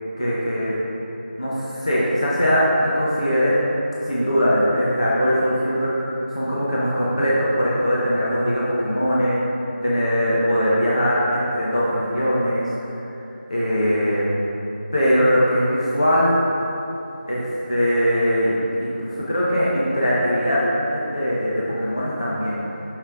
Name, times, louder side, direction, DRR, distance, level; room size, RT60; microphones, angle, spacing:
voice 1, 0.2-0.8 1.4-3.6 4.0-9.4 9.8-12.7 13.5-14.2 14.9-16.4 17.3-22.6, equal, 35° left, -7 dB, 1.0 m, -21 dB
7.8 x 6.4 x 3.7 m, 3.0 s
figure-of-eight pair, 180°, 6 cm